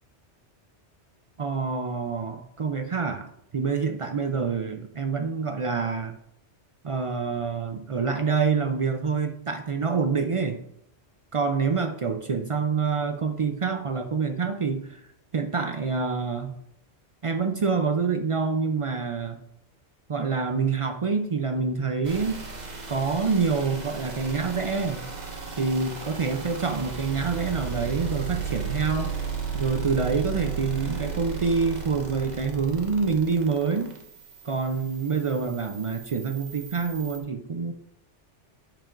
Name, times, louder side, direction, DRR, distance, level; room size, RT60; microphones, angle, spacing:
voice 1, 1.4-3.3 3.5-6.1 6.8-10.6 11.3-15.0 15.3-16.5 17.2-19.4 20.1-22.4 22.9-25.0 25.6-29.1 29.5-33.9 34.4-37.7, right 5 dB, 60° right, 6 dB, 0.3 m, -26 dB
sound 1, 22.0-37.2, right 5 dB, 40° right, 1.1 m, -35 dB
8.9 x 6.8 x 2.5 m, 0.75 s
omnidirectional pair, 1.2 m